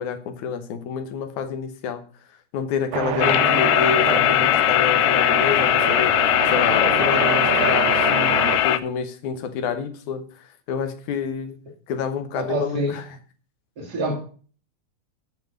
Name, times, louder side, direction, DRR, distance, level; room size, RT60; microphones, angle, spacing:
voice 1, 0.0-2.0 2.5-10.2 10.7-11.6 11.9-13.0, left 6 dB, 70° left, 8 dB, 2.4 m, -28 dB
sound 1, 2.9-8.6, right 10 dB, 70° right, 1.7 m, -27 dB
sound 2, 3.2-8.8, left 14 dB, 90° left, 2.2 m, -19 dB
voice 2, 12.4-13.0 13.8-14.1, right 1 dB, 30° right, 0 dB, 2.9 m, -26 dB
9.2 x 5.4 x 7.6 m, 0.42 s
omnidirectional pair, 3.7 m